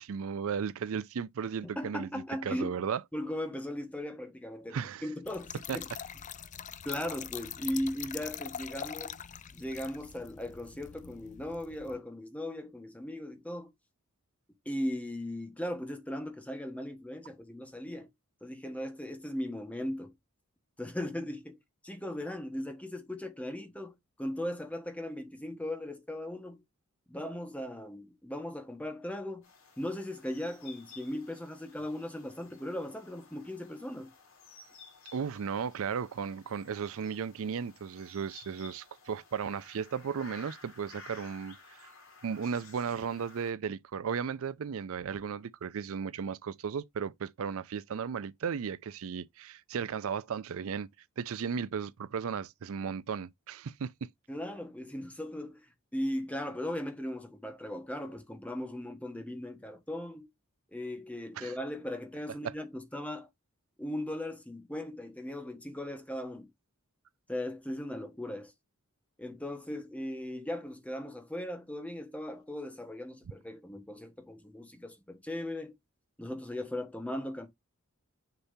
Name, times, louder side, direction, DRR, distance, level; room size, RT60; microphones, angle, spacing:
voice 1, 0.0-3.0 4.7-5.0 5.7-5.8 35.1-41.9 42.2-50.9 51.2-54.1 61.4-61.6 62.4-62.5, right 6 dB, 70° right, 0.4 m, -35 dB
voice 2, 1.6-2.8 3.1-5.9 6.8-9.2 9.5-13.7 14.6-18.1 18.4-20.1 20.8-21.6 21.8-23.9 24.2-26.6 27.1-29.5 29.8-34.1 54.3-55.6 55.9-60.3 60.7-63.3 63.8-66.5 67.3-68.5 69.2-75.7 76.2-77.5, left 1 dB, 5° left, 1.3 m, -38 dB
Trickle dribble / Fill (with liquid), 5.2-12.0, left 9 dB, 35° left, 0.4 m, -43 dB
sound 1, 29.4-43.5, left 4 dB, 65° left, 3.7 m, -55 dB
6.7 x 5.8 x 2.7 m
head